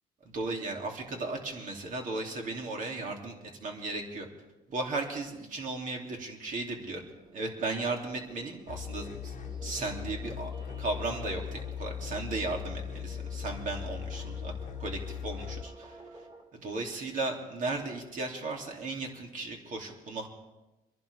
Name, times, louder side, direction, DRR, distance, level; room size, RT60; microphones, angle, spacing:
voice 1, 0.2-4.3 4.7-7.0 7.3-9.3 9.6-10.5 10.8-14.5 14.8-16.0 16.5-20.3, right 3 dB, 50° right, 1 dB, 2.8 m, -35 dB
sound 1, 6.8-16.4, right 3 dB, 30° right, 3.7 m, -51 dB
sound 2, 8.7-15.6, left 8 dB, 45° left, 1.2 m, -39 dB
25.0 x 11.0 x 3.5 m, 1.0 s
cardioid pair, 110°, 17 cm